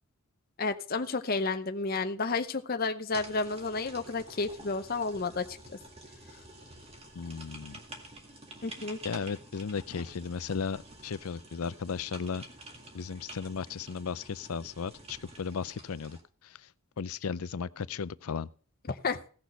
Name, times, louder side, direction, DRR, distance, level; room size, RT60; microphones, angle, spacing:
voice 1, 0.6-5.6 8.6-9.0 18.9-19.2, left 3 dB, 45° left, 0.7 m, -31 dB
sound 1, 3.1-16.2, right 2 dB, 30° right, 1.9 m, -49 dB
voice 2, 7.1-7.8 9.0-12.4 12.9-16.7 17.0-18.5, left 6 dB, 85° left, 0.5 m, -35 dB
16.5 x 6.3 x 5.3 m
head